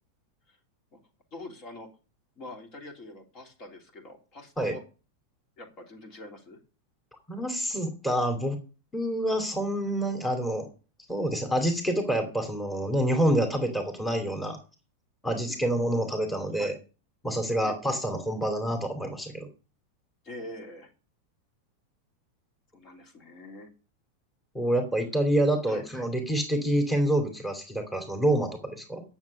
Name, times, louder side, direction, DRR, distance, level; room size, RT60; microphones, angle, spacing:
voice 1, 1.3-1.9 2.4-4.8 5.6-6.6 15.5-15.8 16.5-16.8 17.6-17.8 20.2-20.9 22.7-23.7 25.7-25.9, left 2 dB, 35° left, 3 dB, 3.1 m, -44 dB
voice 2, 7.3-8.6 8.9-10.7 11.1-14.6 15.2-16.7 17.2-19.5 24.5-29.0, right 1 dB, 5° left, 5 dB, 2.7 m, -27 dB
10.5 x 7.3 x 6.6 m, 0.34 s
figure-of-eight pair, 90°, 0 cm